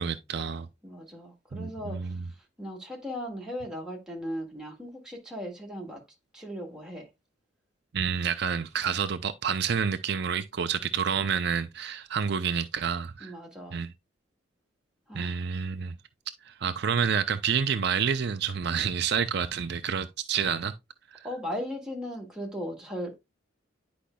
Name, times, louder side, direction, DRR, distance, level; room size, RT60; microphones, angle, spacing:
voice 1, 0.0-0.7 1.5-2.2 7.9-13.3 13.7-13.9 15.2-15.9 16.5-20.7 21.1-21.3, right 7 dB, 55° right, 0.4 m, -29 dB
voice 2, 0.8-6.0 6.3-7.1 13.2-13.8 15.1-15.4 21.2-23.2, equal, 5° right, 1.8 m, -37 dB
10.0 x 5.1 x 2.2 m
head